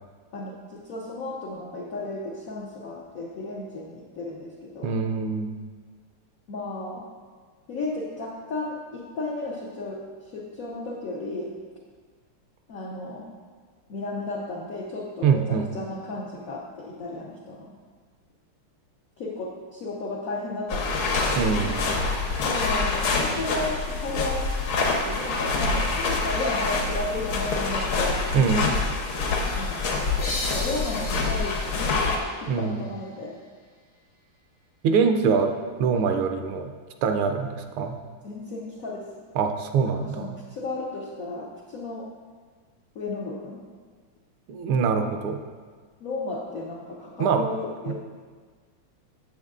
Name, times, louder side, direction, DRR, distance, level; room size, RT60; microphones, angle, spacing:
voice 1, 0.3-5.0 6.5-7.1 7.7-11.5 12.7-13.3 13.9-17.7 19.2-21.4 22.5-24.4 25.1-28.3 29.6-30.1 30.4-32.0 32.4-33.4 38.2-39.1 39.8-42.1 42.9-43.6 46.0-47.9, left 2 dB, 85° left, -3 dB, 0.7 m, -34 dB
voice 2, 4.8-5.6 15.2-15.7 21.4-22.0 28.3-28.7 32.5-32.8 34.8-35.5 35.8-36.7 37.0-38.0 39.4-40.4 44.5-45.4 47.2-47.5 47.9-48.0, right 5 dB, 80° right, 6 dB, 1.4 m, -24 dB
sound 1, 20.7-32.2, left 3 dB, 70° left, 1.5 m, -26 dB
sound 2, 30.2-33.6, left 1 dB, 50° left, 0.7 m, -36 dB
7.8 x 7.2 x 2.4 m, 1.5 s
omnidirectional pair, 2.4 m